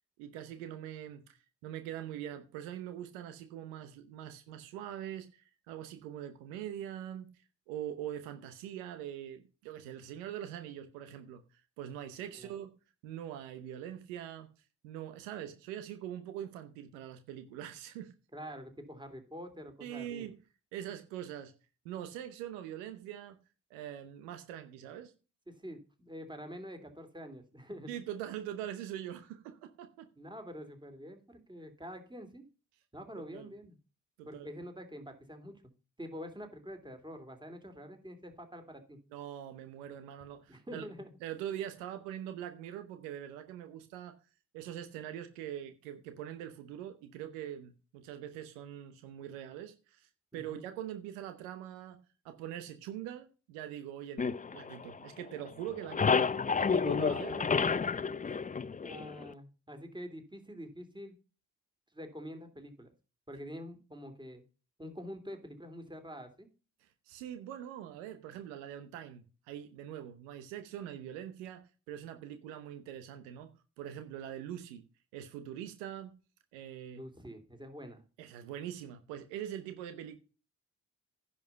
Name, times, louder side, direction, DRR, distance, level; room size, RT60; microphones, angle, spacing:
voice 1, 0.2-7.3 7.7-12.7 13.0-14.5 14.8-18.1 19.8-20.4 20.7-21.5 21.8-23.4 23.7-25.1 27.9-30.1 33.3-33.5 34.2-34.5 39.1-40.8 41.2-44.2 44.5-52.0 52.2-57.4 66.8-74.8 75.1-76.1 76.5-77.0 78.2-80.2, right 10 dB, 90° right, 0.9 m, -43 dB
voice 2, 18.3-20.3 25.5-27.9 30.2-32.4 32.9-33.8 34.2-35.6 36.0-39.0 40.5-41.1 50.3-50.6 57.4-57.9 58.8-61.2 61.9-62.9 63.3-64.4 64.8-66.5 76.9-78.0, equal, 10° right, 3.1 m, -46 dB
sound 1, 54.2-55.3 55.6-59.3, left 5 dB, 20° left, 0.6 m, -30 dB
10.5 x 5.7 x 5.6 m
hypercardioid pair, 45°, 36 cm